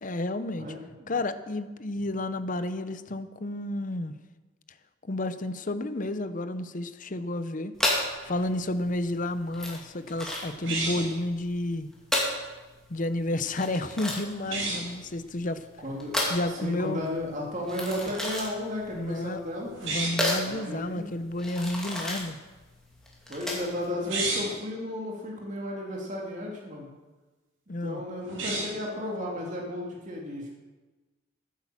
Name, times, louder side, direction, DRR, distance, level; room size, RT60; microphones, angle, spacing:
voice 1, 0.0-0.7 1.1-4.1 5.1-7.7 8.2-11.9 12.9-15.6 16.3-17.0 18.9-19.4 19.8-22.4 27.7-28.0, left 1 dB, 40° left, 12 dB, 0.7 m, -31 dB
voice 2, 0.6-1.1 15.8-19.7 20.4-21.1 23.3-26.9 27.8-30.5, left 1 dB, 35° right, -1 dB, 2.3 m, -34 dB
sound 1, 7.7-23.9, left 1 dB, 5° left, 2.4 m, -33 dB
sound 2, 10.6-11.2 14.4-14.9 19.7-20.3 23.9-24.6 28.2-28.9, right 3 dB, 70° right, 4.1 m, -32 dB
14.5 x 8.5 x 7.3 m, 1.2 s
head